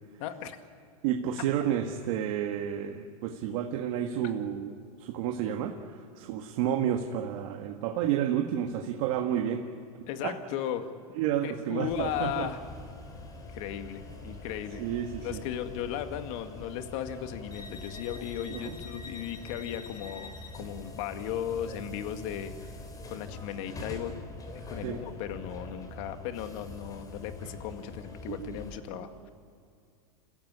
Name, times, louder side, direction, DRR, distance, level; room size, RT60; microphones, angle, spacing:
voice 1, 0.2-0.6 10.1-10.9 11.4-12.6 13.5-14.8 15.2-22.8 23.1-24.1 24.7-29.3, left 10 dB, 60° left, 7 dB, 2.0 m, -36 dB
voice 2, 1.0-4.7 5.0-9.6 10.2-10.3 11.2-12.5 14.8-15.4 18.5-18.8 24.8-25.0 28.3-29.3, right 10 dB, 60° right, 3 dB, 1.7 m, -31 dB
sound 1, 11.9-28.8, left 2 dB, 20° left, 3.7 m, -44 dB
27.5 x 15.5 x 9.9 m, 2.3 s
supercardioid pair, 125°, 19 cm